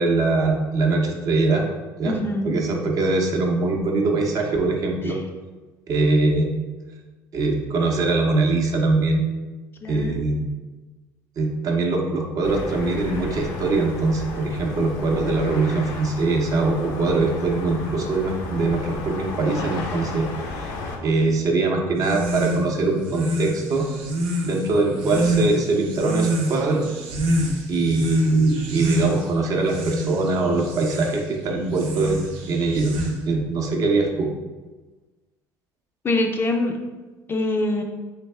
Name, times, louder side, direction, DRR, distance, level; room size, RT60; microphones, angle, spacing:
voice 1, 0.0-1.7 2.0-2.2 2.4-5.2 5.9-6.5 7.3-9.2 9.9-10.5 11.4-20.7 21.0-23.9 24.4-26.8 27.7-33.0 33.3-34.3, right 3 dB, 45° right, 1 dB, 0.7 m, -22 dB
voice 2, 2.0-2.5 5.1-5.2 9.8-10.2 36.0-36.7 37.3-37.8, left 2 dB, 30° left, 3 dB, 0.4 m, -24 dB
sound 1, 12.4-21.0, left 3 dB, 75° left, 0.7 m, -33 dB
sound 2, 21.9-33.4, right 1 dB, 85° right, 0.8 m, -27 dB
3.4 x 3.3 x 3.3 m, 1.3 s
cardioid pair, 110°, 8 cm